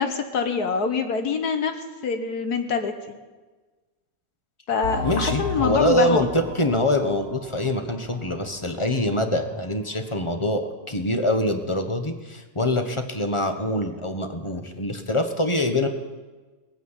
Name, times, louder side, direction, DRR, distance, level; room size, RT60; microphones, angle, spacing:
voice 1, 0.0-1.7 2.0-2.9 4.7-6.2, left 5 dB, 70° left, 7 dB, 1.6 m, -24 dB
sound 1, 4.8-9.1 9.4-9.5 10.1-10.2, left 3 dB, 40° left, 4.6 m, -34 dB
voice 2, 5.0-6.3 6.5-15.9, left 1 dB, 20° left, 6 dB, 1.0 m, -24 dB
18.5 x 9.2 x 8.2 m, 1.3 s
omnidirectional pair, 1.7 m